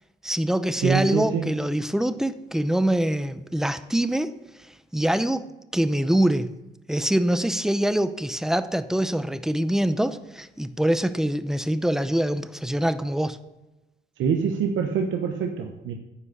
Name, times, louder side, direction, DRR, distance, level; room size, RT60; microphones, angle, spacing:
voice 1, 0.2-4.3 4.9-5.5 5.7-6.5 6.9-13.4, right 1 dB, ahead, 12 dB, 0.6 m, -24 dB
voice 2, 0.8-1.5 14.2-15.9, right 6 dB, 80° right, 4 dB, 0.9 m, -25 dB
9.9 x 5.1 x 6.6 m, 1.0 s
cardioid pair, 90°, 20 cm